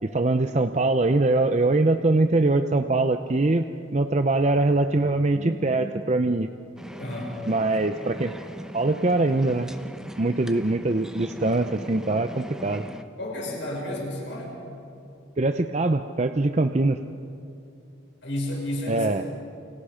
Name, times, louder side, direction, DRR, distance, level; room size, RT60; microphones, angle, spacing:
voice 1, 0.0-6.5 7.5-8.3 8.7-9.7 10.2-12.8 15.4-17.0 18.9-19.2, right 2 dB, 35° right, 8 dB, 0.6 m, -23 dB
sound 1, 6.8-13.0, equal, 5° right, 0.9 m, -40 dB
voice 2, 7.0-7.4 13.2-14.6 18.2-19.3, left 1 dB, 65° left, -2 dB, 6.1 m, -31 dB
29.5 x 27.0 x 5.1 m, 2.7 s
head